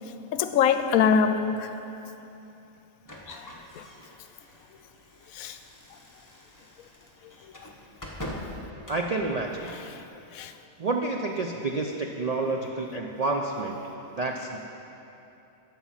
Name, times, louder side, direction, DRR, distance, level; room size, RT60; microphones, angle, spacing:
voice 1, 0.3-1.7 3.3-3.4 3.8-3.9 5.3-5.6 10.3-10.5, left 7 dB, 80° left, 9 dB, 1.0 m, -23 dB
sound 1, 3.0-9.9, left 1 dB, 15° left, 1.0 m, -44 dB
voice 2, 8.9-9.7 10.8-13.8 14.2-14.7, right 3 dB, 65° right, 1 dB, 0.3 m, -29 dB
11.0 x 5.8 x 7.3 m, 2.9 s
omnidirectional pair, 1.5 m